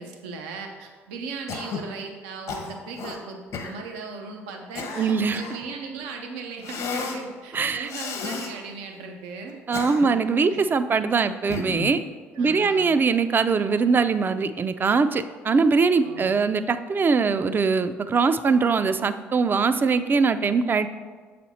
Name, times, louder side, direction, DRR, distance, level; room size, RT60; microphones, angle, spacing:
voice 1, 0.0-9.6 10.5-10.6 12.3-12.9 16.0-16.4, right 4 dB, 85° right, 3 dB, 0.6 m, -38 dB
Cough, 1.5-1.9 2.5-3.2 3.5-3.8 4.5-5.7 6.6-7.2 7.9-8.5 9.5-10.3 11.5-12.0, left 5 dB, 65° left, 1.0 m, -33 dB
voice 2, 5.0-5.4 7.5-7.9 9.7-12.0 12.4-20.9, right 4 dB, 35° right, 11 dB, 0.4 m, -22 dB
7.1 x 4.3 x 4.2 m, 1.5 s
hypercardioid pair, 60°, 6 cm